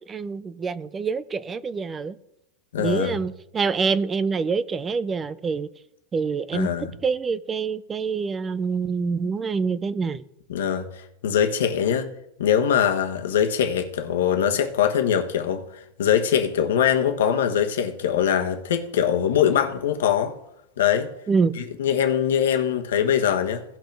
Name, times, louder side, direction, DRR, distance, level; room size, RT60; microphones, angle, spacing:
voice 1, 0.1-2.2 2.8-5.7 6.1-6.7 7.0-10.2 21.3-21.5, right 5 dB, 15° right, 0.4 m, -26 dB
voice 2, 2.7-3.2 6.5-6.9 10.5-12.1 12.4-15.6 16.0-20.3 20.8-21.1 21.6-23.6, left 9 dB, 85° left, 1.2 m, -22 dB
17.0 x 6.0 x 3.5 m
supercardioid pair, 145°, 0 cm